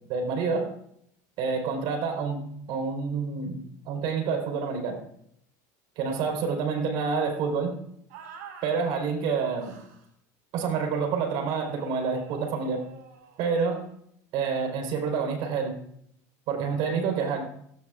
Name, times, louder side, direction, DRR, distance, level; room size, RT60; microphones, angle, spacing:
voice 1, 0.1-0.7 1.4-5.0 6.0-7.7 8.6-9.8 10.5-12.8 13.4-13.8 14.3-15.7 16.5-17.4, right 5 dB, 60° right, 4 dB, 4.4 m, -28 dB
sound 1, 8.1-8.7 9.6-10.1 11.5-13.9, right 6 dB, 80° right, 5.1 m, -48 dB
18.5 x 17.5 x 2.5 m, 0.71 s
supercardioid pair, 115°, 9 cm